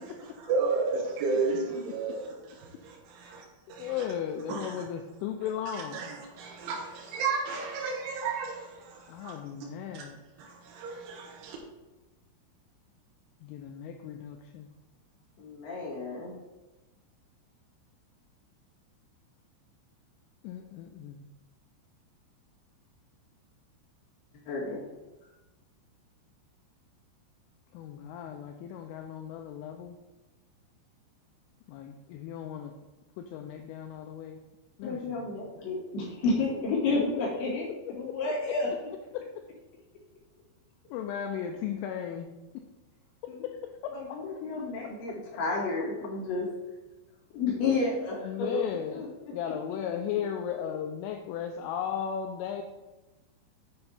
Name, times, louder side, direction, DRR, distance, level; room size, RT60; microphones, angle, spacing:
voice 1, 0.5-2.3 2.6-3.4 3.7-4.0 4.5-4.7 5.9-9.3 9.9-10.0 10.4-11.6, right 4 dB, 75° right, -2 dB, 3.2 m, -32 dB
voice 2, 3.8-6.1 9.1-10.2 13.4-14.7 20.4-21.2 27.7-30.0 31.7-32.7 33.2-34.4 34.8-35.4 38.5-38.6 39.1-39.2 40.9-42.3 48.2-49.1 49.3-52.6, left 9 dB, 85° left, 4 dB, 2.9 m, -36 dB
voice 3, 15.4-16.3 24.5-24.8 34.8-37.7 38.0-38.7 43.3-43.4 43.9-46.5 47.3-48.6 48.9-49.3, left 3 dB, 55° left, -6 dB, 3.6 m, -31 dB
8.6 x 5.7 x 4.2 m, 1.1 s
omnidirectional pair, 6.0 m